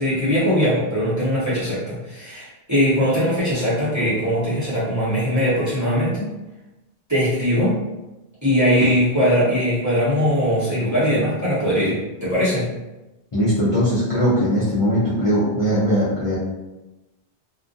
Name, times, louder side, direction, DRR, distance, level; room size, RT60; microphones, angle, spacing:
voice 1, 0.0-6.3 7.1-7.8 8.4-12.7, equal, 20° right, -11 dB, 0.8 m, -20 dB
voice 2, 13.3-16.4, equal, 35° left, -11 dB, 0.6 m, -20 dB
2.3 x 2.2 x 2.5 m, 1.0 s
omnidirectional pair, 1.1 m